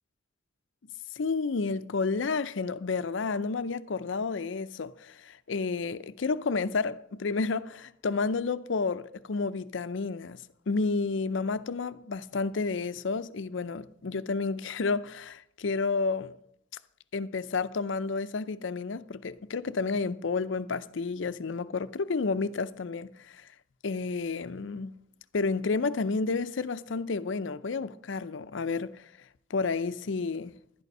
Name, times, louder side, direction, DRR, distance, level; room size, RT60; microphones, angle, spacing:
voice 1, 1.2-10.4 10.7-16.3 17.1-23.1 23.8-24.9 25.3-29.0 29.5-30.5, left 4 dB, 65° left, 0.5 m, -31 dB
11.5 x 11.0 x 5.4 m
head